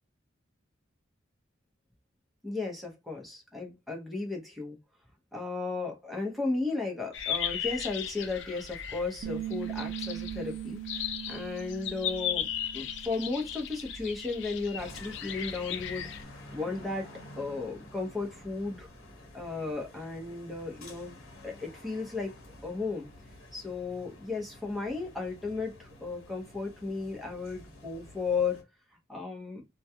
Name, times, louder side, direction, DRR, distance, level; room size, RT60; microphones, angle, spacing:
voice 1, 2.4-4.8 5.3-12.5 12.7-17.1 17.4-18.9 19.3-22.4 22.6-23.1 23.5-28.6 29.1-29.6, left 3 dB, ahead, 0.7 m, -35 dB
sound 1, 7.1-16.2, left 9 dB, 60° left, 0.4 m, -37 dB
Bass guitar, 9.2-13.6 13.9-15.5, right 13 dB, 85° right, 0.3 m, -41 dB
sound 2, 14.8-28.6, left 1 dB, 90° left, 0.9 m, -50 dB
2.3 x 2.2 x 2.7 m
head